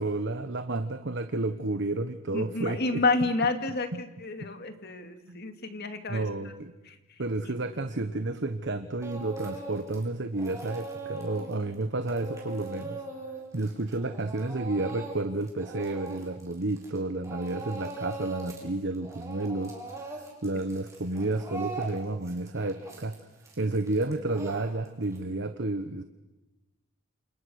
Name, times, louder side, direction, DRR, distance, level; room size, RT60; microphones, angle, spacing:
voice 1, 0.0-3.0 3.9-4.0 4.4-4.5 5.3-5.4 6.1-6.7 7.2-13.0 13.5-19.8 20.4-23.2 23.6-26.0, right 2 dB, 55° right, 9 dB, 1.2 m, -31 dB
voice 2, 2.3-6.5 6.9-7.0, left 3 dB, 50° left, 7 dB, 2.4 m, -30 dB
Speech / Crying sobbing, 9.0-10.0 10.3-17.0 17.2-18.7 18.9-25.2, right 3 dB, 15° right, 6.0 m, -40 dB
28.5 x 28.0 x 6.5 m, 1.1 s
head